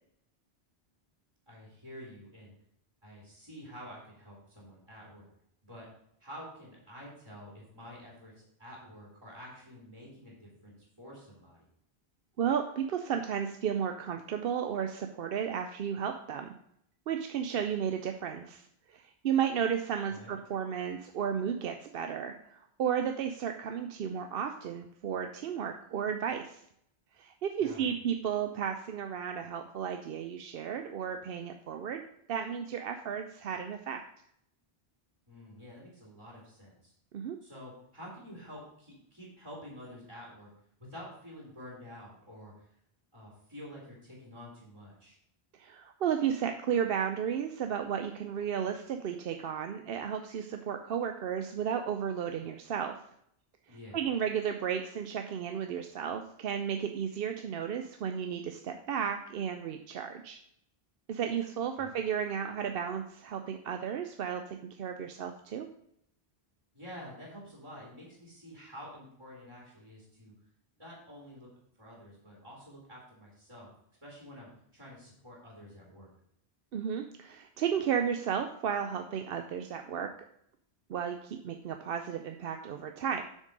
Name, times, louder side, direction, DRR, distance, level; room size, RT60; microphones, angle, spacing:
voice 1, 1.5-2.5 3.0-5.3 5.6-5.9 6.2-11.6 20.1-20.3 27.6-27.9 35.3-36.9 37.4-40.5 40.9-42.7 43.1-45.2 53.7-54.0 61.7-61.9 66.7-70.3 70.8-71.5 71.8-73.7 74.0-76.1, equal, 25° right, -4 dB, 2.8 m, -49 dB
voice 2, 12.4-16.5 17.1-26.6 27.2-32.0 32.3-34.0 37.1-37.4 45.6-53.0 53.7-60.4 61.1-65.7 76.7-80.1 80.9-83.2, right 8 dB, 70° right, 6 dB, 0.8 m, -33 dB
7.4 x 6.4 x 5.2 m, 0.73 s
omnidirectional pair, 1.0 m